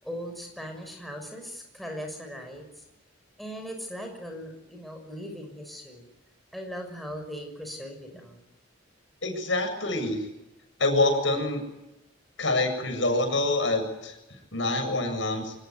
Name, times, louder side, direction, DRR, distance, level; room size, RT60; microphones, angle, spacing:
voice 1, 0.0-2.8 3.4-6.1 6.5-8.4, equal, ahead, 2 dB, 6.4 m, -39 dB
voice 2, 9.2-10.2 10.8-11.6 12.4-14.2 14.5-15.5, left 2 dB, 70° left, 6 dB, 7.7 m, -26 dB
25.5 x 21.0 x 9.6 m, 0.92 s
head